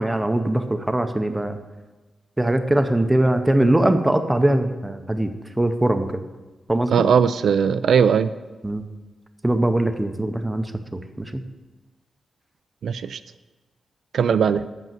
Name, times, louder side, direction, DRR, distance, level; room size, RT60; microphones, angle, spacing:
voice 1, 0.0-1.6 2.4-5.3 5.6-6.1 6.7-6.9 8.6-8.9 9.4-10.7 10.9-11.4, right 1 dB, 10° right, 8 dB, 0.6 m, -21 dB
voice 2, 6.9-8.3 12.8-13.2 14.1-14.6, right 7 dB, 75° right, 12 dB, 0.3 m, -19 dB
7.9 x 6.2 x 7.4 m, 1.2 s
wide cardioid pair, 165°, 0 cm